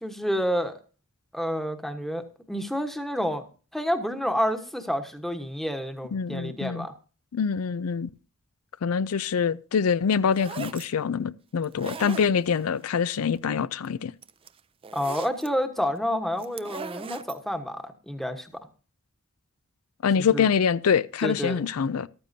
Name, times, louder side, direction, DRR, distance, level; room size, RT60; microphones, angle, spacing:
voice 1, 0.0-0.7 1.3-3.4 3.7-6.9 14.9-18.5 20.3-20.5 21.2-21.6, equal, ahead, 1.1 m, -29 dB
voice 2, 6.1-6.9 7.3-8.1 8.8-14.1 20.0-22.1, left 6 dB, 90° left, 0.4 m, -25 dB
sound 1, 10.1-10.9 11.6-12.7 13.8-13.9 14.2-15.5 16.4-17.4, right 5 dB, 25° right, 0.4 m, -39 dB
14.0 x 12.5 x 2.7 m
head